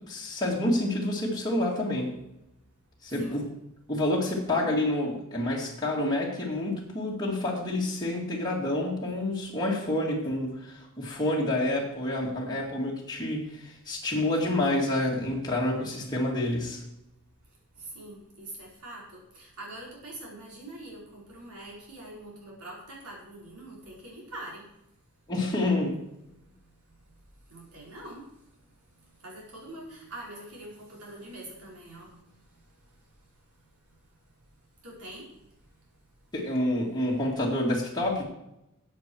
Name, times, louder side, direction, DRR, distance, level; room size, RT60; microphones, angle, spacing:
voice 1, 0.1-2.1 3.0-3.5 3.9-16.8 25.3-26.0 36.3-38.2, left 1 dB, 20° left, -4 dB, 2.4 m, -28 dB
voice 2, 17.7-24.7 26.6-26.8 27.1-27.2 27.5-28.3 29.0-33.0 34.8-35.5, right 1 dB, 70° right, -3 dB, 5.0 m, -44 dB
14.0 x 8.3 x 4.7 m, 0.85 s
head